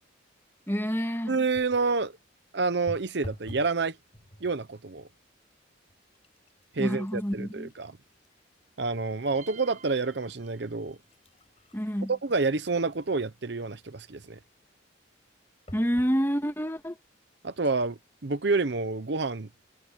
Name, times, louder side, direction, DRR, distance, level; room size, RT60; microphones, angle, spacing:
voice 1, 0.7-1.3 6.8-7.7 11.7-12.1 15.7-17.0, equal, 10° left, 2.5 m, -28 dB
voice 2, 1.3-2.2 2.5-4.0 4.4-5.1 6.7-8.0 8.8-11.0 12.1-14.4 17.4-19.5, right 3 dB, 60° right, 0.8 m, -28 dB
sound 1, 1.5-2.0 2.9-3.8 4.1-4.6 5.4-5.5 5.9-9.5 10.0-10.1 10.7-13.5 15.7-16.2 16.9-17.0 17.2-17.3, equal, 35° left, 4.9 m, -48 dB
sound 2, 9.3-11.2, right 6 dB, 40° right, 6.0 m, -52 dB
head